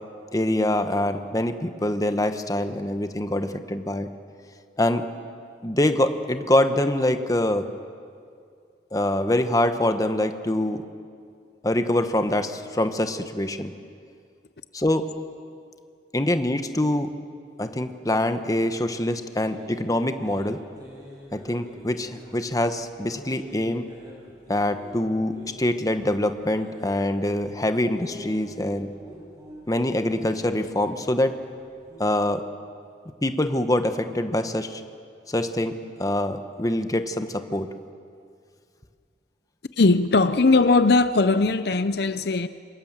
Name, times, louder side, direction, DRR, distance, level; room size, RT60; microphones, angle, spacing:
voice 1, 0.3-4.1 4.8-5.0 5.6-7.7 8.9-10.8 11.6-13.7 14.7-15.1 16.1-17.1 17.6-20.6 21.3-23.9 24.5-28.9 29.7-31.3 32.0-32.4 33.2-34.8 35.3-37.7, left 1 dB, 20° left, 1.2 m, -24 dB
sound 1, 19.4-32.0, equal, 20° right, 6.0 m, -46 dB
voice 2, 39.8-42.5, left 3 dB, 65° left, 0.7 m, -19 dB
27.0 x 24.0 x 7.4 m
head